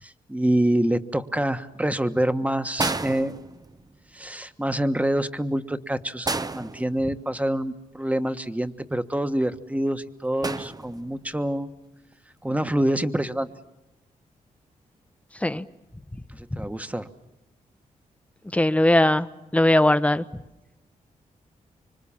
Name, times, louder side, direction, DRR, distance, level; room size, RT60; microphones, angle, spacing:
voice 1, 0.0-3.4 4.1-11.7 12.4-13.5 16.3-17.1, right 1 dB, 10° right, 9 dB, 1.4 m, -26 dB
sound 1, 2.8-4.0 6.2-7.5 10.4-11.3 12.6-12.8, right 3 dB, 25° right, 0.8 m, -31 dB
voice 2, 18.5-19.3 19.5-20.2, left 1 dB, 10° left, 13 dB, 0.9 m, -19 dB
26.0 x 24.5 x 7.3 m, 0.98 s
cardioid pair, 60°, 15 cm